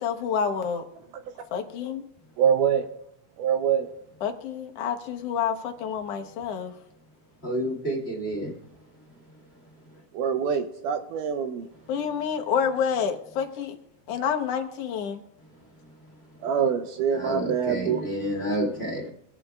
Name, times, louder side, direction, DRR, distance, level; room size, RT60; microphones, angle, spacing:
voice 1, 0.0-0.9 1.5-2.0 4.2-6.7 11.9-13.7 14.1-15.2, left 7 dB, 65° left, 1.6 m, -28 dB
voice 2, 2.4-2.8 3.4-3.8 10.2-11.6 16.4-18.0, right 7 dB, 80° right, 2.0 m, -24 dB
voice 3, 7.4-8.5 17.1-19.1, equal, 20° left, 1.9 m, -29 dB
24.5 x 8.4 x 2.3 m
omnidirectional pair, 3.9 m